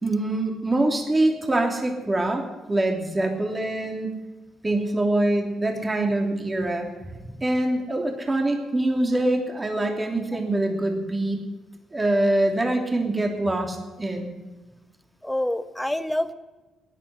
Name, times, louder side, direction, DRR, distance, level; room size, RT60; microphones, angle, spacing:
voice 1, 0.0-4.2 4.6-6.9 7.4-11.4 11.9-14.3, right 1 dB, 20° right, 2 dB, 3.1 m, -24 dB
voice 2, 15.2-16.3, left 1 dB, 5° left, 11 dB, 1.2 m, -27 dB
15.5 x 11.0 x 8.3 m, 1.2 s
cardioid pair, 90°, 0 cm